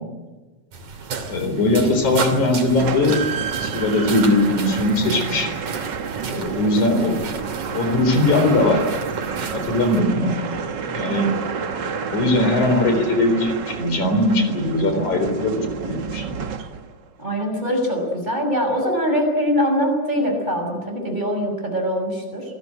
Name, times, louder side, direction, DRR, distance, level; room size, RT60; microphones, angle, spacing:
sound 1, 0.7-10.0, right 5 dB, 80° right, 4.3 m, -33 dB
voice 1, 1.3-3.2 3.6-5.5 6.3-7.2 7.7-8.8 9.5-10.4 10.9-11.3 12.1-16.3, left 2 dB, 75° left, 6 dB, 5.4 m, -20 dB
sound 2, 2.8-17.0, right 6 dB, 45° right, 1.6 m, -29 dB
voice 2, 17.2-22.4, equal, 15° right, 2 dB, 6.3 m, -23 dB
27.5 x 20.5 x 7.9 m, 1.2 s
omnidirectional pair, 3.5 m